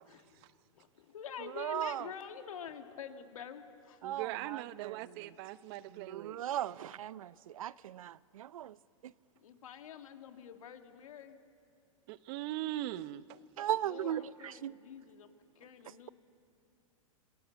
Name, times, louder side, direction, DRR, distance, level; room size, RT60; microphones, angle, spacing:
voice 1, 0.0-0.5 0.7-4.0 9.4-11.4 13.9-16.1, left 7 dB, 80° left, 2.0 m, -47 dB
voice 2, 1.6-2.0 4.0-5.3 5.9-8.8 9.0-9.1 13.6-14.3 14.6-14.8, right 11 dB, 80° right, 0.6 m, -37 dB
voice 3, 4.0-6.4 12.1-13.4, right 15 dB, 50° right, 0.8 m, -40 dB
27.0 x 20.5 x 8.1 m
hypercardioid pair, 120°, 17 cm